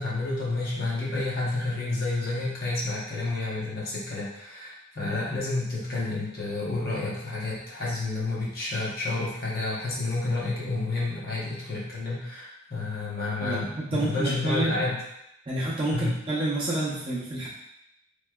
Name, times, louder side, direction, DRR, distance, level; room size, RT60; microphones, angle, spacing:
voice 1, 0.0-15.0 15.9-16.2, left 2 dB, 45° left, -6 dB, 0.8 m, -30 dB
voice 2, 13.4-14.8 15.5-17.5, right 2 dB, 25° right, -7 dB, 0.6 m, -28 dB
3.0 x 2.7 x 2.3 m, 0.82 s
head